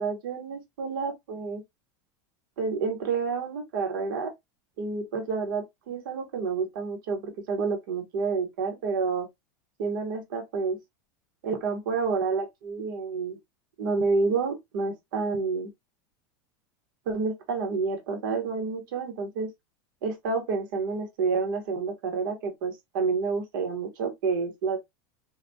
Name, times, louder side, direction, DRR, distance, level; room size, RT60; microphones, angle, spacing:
voice 1, 0.0-1.6 2.6-4.3 4.8-9.3 9.8-10.8 11.4-13.4 13.8-15.7 17.1-19.5 20.0-24.8, right 4 dB, 75° right, 1.0 m, -29 dB
2.2 x 2.2 x 2.6 m
supercardioid pair, 135°, 11 cm